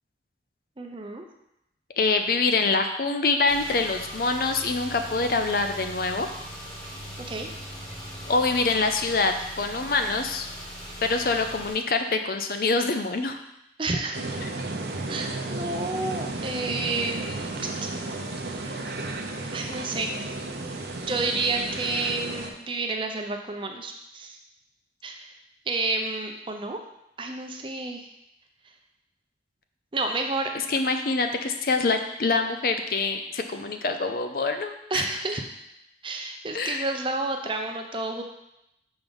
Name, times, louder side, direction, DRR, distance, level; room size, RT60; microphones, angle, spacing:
voice 1, 0.8-1.3 7.3-7.5 13.8-14.2 15.1-17.3 18.6-19.3 19.5-20.3 21.0-24.4 25.0-25.3 25.7-26.8 27.2-28.1 29.9-30.5 34.9-35.5 36.0-38.2, right 3 dB, 30° right, 4 dB, 0.5 m, -30 dB
voice 2, 2.0-6.3 8.3-10.5 11.0-13.4 14.4-14.5 30.7-35.1 36.5-36.9, left 3 dB, 55° left, 6 dB, 0.5 m, -25 dB
Car / Engine, 3.5-11.7, equal, 20° left, 1.9 m, -40 dB
sound 1, 14.1-22.5, right 2 dB, 70° right, 0.7 m, -33 dB
6.0 x 3.8 x 5.2 m, 0.84 s
head